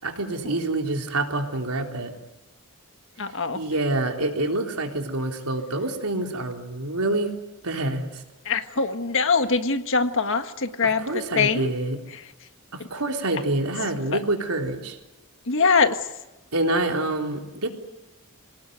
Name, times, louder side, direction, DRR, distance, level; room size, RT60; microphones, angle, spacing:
voice 1, 0.0-2.1 3.5-7.3 7.6-8.2 11.0-12.0 12.7-15.0 16.5-17.7, right 2 dB, 85° right, 2 dB, 3.8 m, -26 dB
voice 2, 3.2-3.6 8.4-11.1 11.3-11.7 12.1-12.2 15.5-16.0, left 4 dB, 60° left, 8 dB, 1.7 m, -22 dB
26.5 x 18.5 x 9.4 m, 1.0 s
head